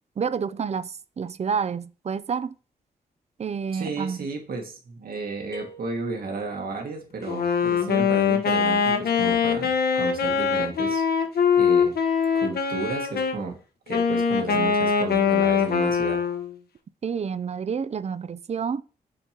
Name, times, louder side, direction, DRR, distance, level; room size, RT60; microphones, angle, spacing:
voice 1, 0.2-2.5 3.4-4.2 17.0-18.8, right 6 dB, 45° right, 0.5 m, -29 dB
voice 2, 3.7-11.0 11.3-12.0 12.3-13.6 13.9-16.2, right 4 dB, 70° right, 2.0 m, -33 dB
sound 1, 5.5-6.7, right 1 dB, 15° left, 2.5 m, -46 dB
Wind instrument woodwind instrument, 7.2-13.4 13.9-16.5, left 6 dB, 75° left, 1.2 m, -22 dB
6.7 x 5.3 x 2.9 m
cardioid pair, 85°, 16 cm